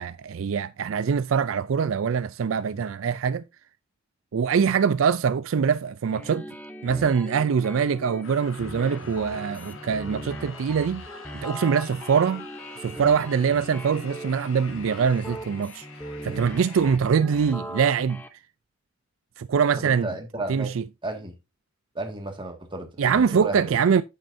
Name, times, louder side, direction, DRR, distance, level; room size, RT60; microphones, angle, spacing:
voice 1, 0.0-3.4 4.3-6.5 6.8-11.1 11.4-12.5 12.8-15.9 16.2-18.2 19.4-20.1 20.5-20.8 23.0-24.0, right 6 dB, 75° right, 0.4 m, -23 dB
sound 1, 6.1-18.3, equal, 10° left, 0.8 m, -40 dB
sound 2, 8.2-17.0, left 5 dB, 80° left, 1.6 m, -45 dB
voice 2, 19.8-20.7 21.0-21.4 21.9-23.8, right 2 dB, 25° right, 1.9 m, -34 dB
8.9 x 8.0 x 2.7 m
head